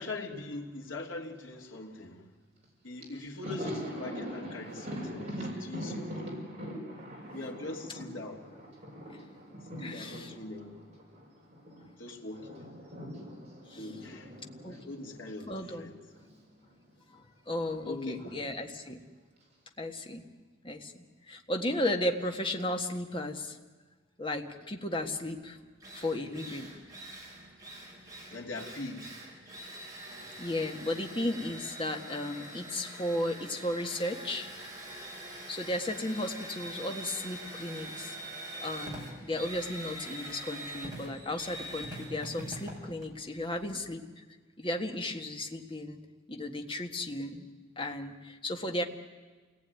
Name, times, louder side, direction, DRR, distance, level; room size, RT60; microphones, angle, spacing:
voice 1, 0.0-2.2 2.8-6.1 7.3-8.4 9.8-10.8 12.0-12.9 13.8-14.3 14.6-15.5 15.8-16.0 17.8-18.2 28.3-29.1, left 2 dB, 80° left, 0 dB, 3.0 m, -41 dB
Thunder, 2.6-2.7 3.0-11.8 12.1-16.4 16.7-16.8 18.0-18.7, equal, 35° right, 5.5 m, -42 dB
voice 2, 9.8-10.3 13.7-14.0 14.6-14.8 15.5-15.9 17.1-19.0 19.8-20.2 20.6-20.9 21.3-23.6 24.2-25.6 25.9-26.7 30.4-34.5 35.5-38.1 38.6-44.2 44.6-46.0 46.3-47.5 47.8-48.8, left 1 dB, 25° left, 4 dB, 1.6 m, -35 dB
Drill, 25.4-25.5 25.8-43.9, right 1 dB, 20° right, 5.3 m, -44 dB
28.0 x 19.0 x 9.5 m, 1.4 s
head